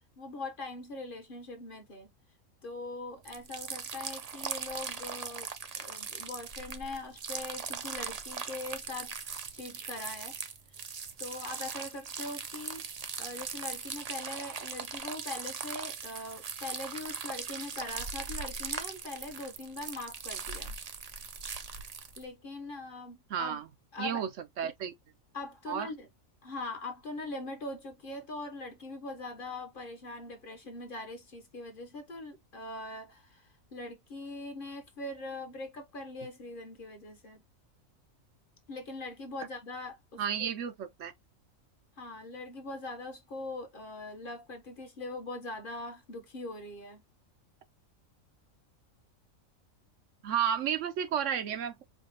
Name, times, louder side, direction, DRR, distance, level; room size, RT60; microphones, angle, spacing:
voice 1, 0.2-2.1 2.6-5.5 5.7-10.4 10.7-10.8 11.2-12.8 13.2-20.7 22.2-23.6 23.9-24.2 25.3-26.1 26.4-37.4 38.7-40.5 42.0-47.0, left 2 dB, 45° left, 1.0 m, -42 dB
sound 1, 3.2-22.2, right 6 dB, 50° right, 0.4 m, -40 dB
voice 2, 23.3-23.7 24.0-24.3 24.6-24.9 25.7-25.9 40.2-41.1 50.2-51.8, right 8 dB, 70° right, 1.0 m, -32 dB
4.9 x 2.2 x 2.8 m
omnidirectional pair, 1.4 m